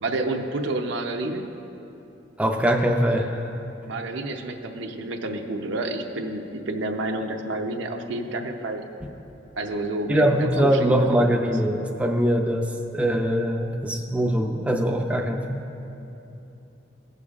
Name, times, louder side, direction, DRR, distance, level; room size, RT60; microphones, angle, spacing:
voice 1, 0.0-1.4 3.8-8.8 9.6-11.3, right 2 dB, 70° right, 4 dB, 0.6 m, -29 dB
voice 2, 2.4-3.5 10.1-15.6, equal, 5° right, 2 dB, 0.4 m, -22 dB
16.5 x 6.8 x 2.4 m, 2.8 s
head